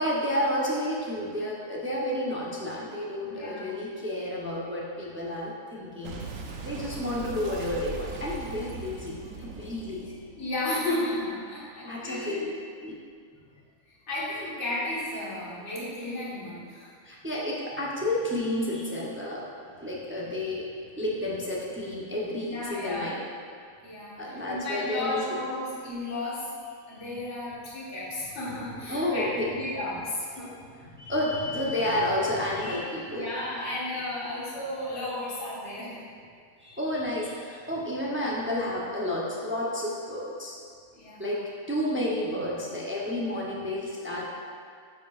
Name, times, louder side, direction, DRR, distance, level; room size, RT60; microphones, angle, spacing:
voice 1, 0.0-6.3 6.6-10.2 11.8-12.5 12.8-13.0 17.0-19.5 19.8-20.7 21.0-23.2 24.2-25.4 26.9-27.0 28.9-29.6 30.8-33.3 36.6-40.6 41.2-44.3, left 1 dB, 15° right, -5 dB, 0.4 m, -31 dB
voice 2, 3.2-3.8 10.3-12.5 13.9-16.9 22.4-23.1 23.8-26.4 26.9-29.3 29.5-30.5 31.7-31.9 33.1-35.9 40.9-41.3, left 1 dB, 50° left, -8 dB, 1.8 m, -33 dB
Boom, 6.0-11.3, right 4 dB, 70° right, 1.0 m, -40 dB
9.9 x 4.8 x 2.4 m, 2.2 s
omnidirectional pair, 1.5 m